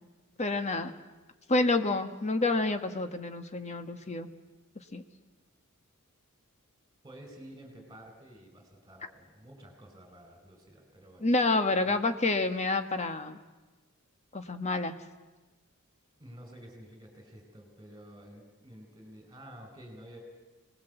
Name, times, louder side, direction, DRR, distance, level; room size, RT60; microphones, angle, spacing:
voice 1, 0.4-0.9 1.5-4.3 4.9-5.0 11.2-13.4 14.3-14.9, left 2 dB, 30° left, 8 dB, 1.4 m, -28 dB
voice 2, 7.0-11.3 11.8-12.0 16.2-20.2, right 1 dB, 15° right, 3 dB, 5.1 m, -50 dB
26.0 x 19.5 x 8.1 m, 1.2 s
head